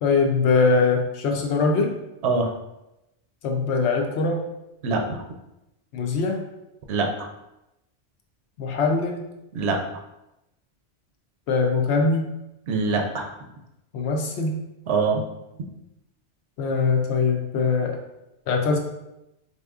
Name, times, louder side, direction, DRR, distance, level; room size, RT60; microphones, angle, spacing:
voice 1, 0.0-1.9 3.4-4.4 5.9-6.4 8.6-9.2 11.5-12.3 13.9-14.6 16.6-18.0 18.5-18.8, left 4 dB, 80° left, 3 dB, 0.9 m, -22 dB
voice 2, 4.8-5.2 6.9-7.1 9.5-9.8 12.7-13.3 14.9-15.2, right 4 dB, 75° right, 3 dB, 0.8 m, -23 dB
4.1 x 2.7 x 2.3 m, 0.90 s
omnidirectional pair, 1.1 m